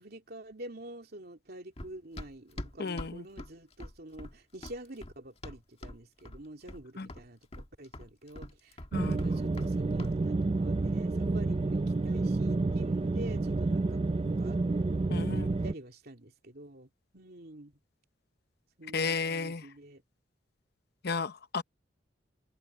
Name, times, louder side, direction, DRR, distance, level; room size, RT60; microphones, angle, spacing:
voice 1, 0.0-14.6 15.3-17.7 18.8-20.0, right 1 dB, 55° right, 3.0 m, -47 dB
Run, 1.8-6.0 6.3-6.8 7.1-9.7 10.0-10.2, left 1 dB, 35° left, 1.6 m, -44 dB
voice 2, 2.8-3.2 7.0-7.1 8.9-9.2 15.1-15.5 18.9-19.7 21.0-21.6, left 4 dB, 60° left, 0.8 m, -33 dB
sound 1, 8.9-15.7, right 3 dB, 30° right, 0.4 m, -29 dB
head